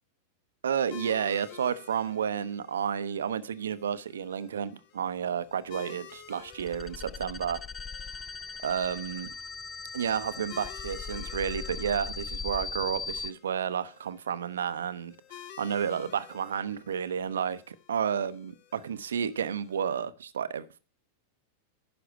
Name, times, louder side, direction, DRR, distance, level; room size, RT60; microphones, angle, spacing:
voice 1, 0.6-7.6 8.6-9.3 9.9-20.8, right 8 dB, 65° right, 0.6 m, -31 dB
sound 1, 0.9-20.0, left 9 dB, 50° left, 1.2 m, -52 dB
sound 2, 6.5-13.3, left 5 dB, 15° left, 0.4 m, -39 dB
10.5 x 5.9 x 6.3 m
figure-of-eight pair, 90°, 0 cm